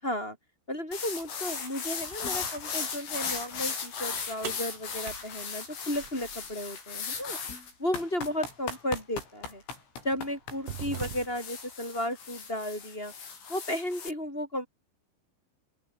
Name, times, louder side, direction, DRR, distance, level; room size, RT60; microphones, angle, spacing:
voice 1, 0.0-0.4 0.7-7.4 7.8-9.6 10.0-13.1 13.5-14.7, left 1 dB, 10° left, 5.8 m, -34 dB
sound 1, 0.9-14.1, left 5 dB, 85° left, 10.0 m, -37 dB
sound 2, 4.4-6.6 8.5-8.6 9.4-9.6 10.1-11.6, right 8 dB, 55° right, 1.8 m, -41 dB
open air
omnidirectional pair, 5.6 m